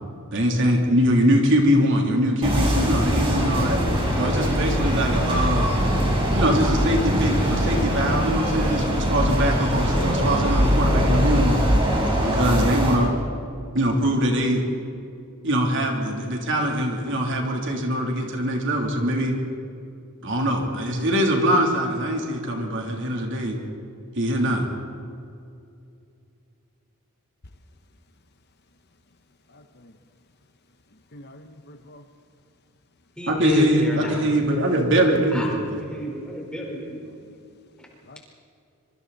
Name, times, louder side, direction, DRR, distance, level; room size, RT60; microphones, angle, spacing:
voice 1, 0.3-3.8 4.2-5.7 6.3-11.6 12.3-13.1 13.7-14.6 15.4-19.4 20.2-23.6 24.2-24.6 33.3-35.8, equal, 55° right, 1 dB, 3.3 m, -22 dB
sound 1, 2.4-13.0, equal, 25° right, 4.8 m, -22 dB
voice 2, 29.5-29.9 31.1-32.0 38.1-38.2, left 1 dB, 50° left, 7 dB, 1.1 m, -47 dB
voice 3, 33.2-34.2 35.3-37.4, equal, 5° left, -2 dB, 4.5 m, -31 dB
25.5 x 24.5 x 4.2 m, 2.5 s
head